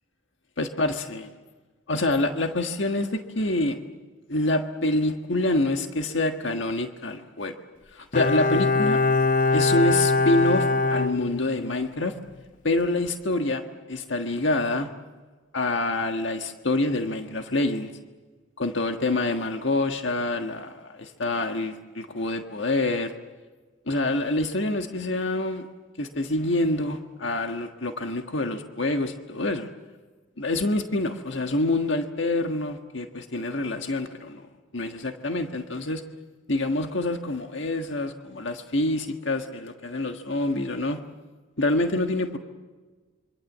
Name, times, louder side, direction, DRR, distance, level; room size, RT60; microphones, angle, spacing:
voice 1, 0.6-1.2 1.9-3.8 4.3-7.5 7.9-9.0 9.5-12.1 12.6-13.6 13.9-14.9 15.5-17.9 18.6-23.1 23.9-25.7 26.0-29.7 30.4-34.5 34.7-36.0 36.5-41.0 41.6-42.4, left 2 dB, 65° left, 5 dB, 1.6 m, -26 dB
Bowed string instrument, 8.1-11.9 12.2-12.3, left 3 dB, 40° left, 0.8 m, -23 dB
26.5 x 25.0 x 7.4 m, 1.4 s
head